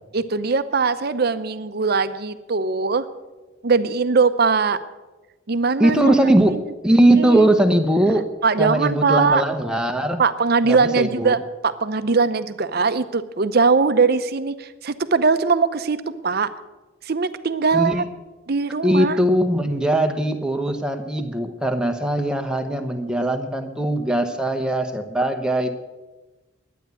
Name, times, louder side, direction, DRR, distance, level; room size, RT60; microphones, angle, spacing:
voice 1, 0.1-3.1 3.6-4.8 5.5-6.1 6.5-6.6 7.2-7.5 8.4-9.4 10.2-16.5 17.0-18.0 18.5-19.2, right 4 dB, 50° right, 12 dB, 0.7 m, -21 dB
voice 2, 5.8-6.6 6.8-8.3 8.6-10.2 10.6-11.4 17.7-18.0 18.8-25.8, right 1 dB, 5° right, 5 dB, 0.9 m, -20 dB
12.0 x 9.3 x 8.3 m, 1.2 s
head